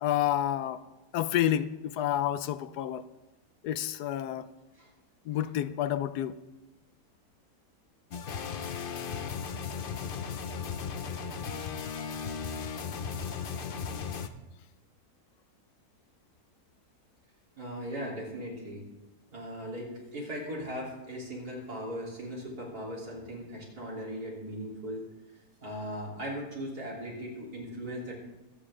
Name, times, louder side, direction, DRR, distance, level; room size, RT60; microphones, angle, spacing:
voice 1, 0.0-0.8 1.1-3.0 3.6-4.5 5.3-6.4, left 11 dB, 80° left, 1.1 m, -29 dB
sound 1, 8.1-14.3, left 6 dB, 55° left, 0.6 m, -36 dB
voice 2, 17.6-18.8 19.3-25.0 25.6-28.2, equal, 70° right, 4.0 m, -38 dB
24.0 x 8.7 x 3.7 m
omnidirectional pair, 1.7 m